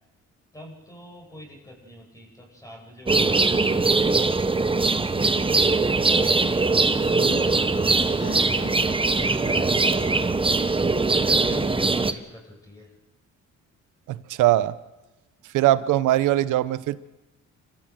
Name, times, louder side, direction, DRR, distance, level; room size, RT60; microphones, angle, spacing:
voice 1, 0.5-3.9 4.5-4.7 5.5-10.4 10.6-12.9, equal, 10° left, -1 dB, 7.9 m, -44 dB
sound 1, 3.1-12.1, right 3 dB, 15° right, 1.1 m, -21 dB
Laughter, 6.9-11.9, left 4 dB, 50° left, 5.9 m, -39 dB
voice 2, 14.1-14.7 15.5-17.0, right 15 dB, 90° right, 16 dB, 0.9 m, -21 dB
28.0 x 14.5 x 7.7 m, 1.1 s
cardioid pair, 90°, 30 cm